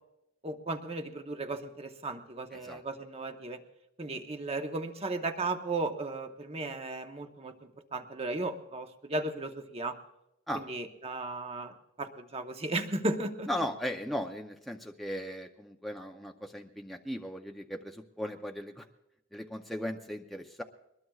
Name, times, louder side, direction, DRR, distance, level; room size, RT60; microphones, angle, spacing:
voice 1, 0.4-3.6 4.0-7.5 7.9-10.0 10.5-13.5, right 2 dB, 30° right, 6 dB, 1.0 m, -35 dB
voice 2, 13.5-18.9 19.3-20.6, equal, ahead, 2 dB, 0.6 m, -37 dB
23.0 x 20.5 x 2.4 m, 0.87 s
head